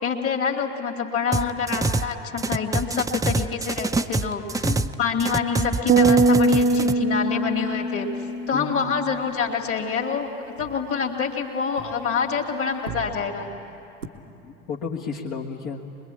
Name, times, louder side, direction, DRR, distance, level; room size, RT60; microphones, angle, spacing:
voice 1, 0.0-8.1 8.5-10.3 10.6-13.5, left 6 dB, 40° left, 3 dB, 2.5 m, -26 dB
sound 1, 1.3-2.1 2.4-4.9 5.2-6.9, right 2 dB, 10° right, 0.5 m, -25 dB
sound 2, 4.5-7.6 7.9-8.3 8.5-12.4 12.7-14.1, right 6 dB, 90° right, 1.1 m, -44 dB
voice 2, 4.6-5.0 8.5-8.8 14.4-15.8, left 5 dB, 55° left, -5 dB, 1.7 m, -32 dB
sound 3, 5.9-9.3, right 3 dB, 30° right, 0.8 m, -21 dB
24.5 x 21.5 x 8.4 m, 2.9 s
figure-of-eight pair, 65°, 36 cm